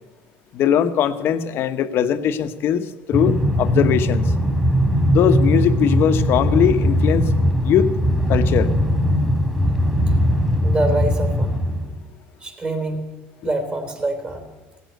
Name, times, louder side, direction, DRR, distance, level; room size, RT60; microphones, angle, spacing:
voice 1, 0.5-4.3 5.1-7.3 7.6-7.9 8.3-8.7, left 9 dB, 55° left, 9 dB, 1.0 m, -20 dB
Train, 3.1-12.0, equal, 10° right, 2.5 m, -19 dB
voice 2, 10.6-11.6 12.4-13.1 13.4-14.5, right 2 dB, 25° right, 6 dB, 3.5 m, -25 dB
17.0 x 8.3 x 9.3 m, 1.3 s
cardioid pair, 110°, 5 cm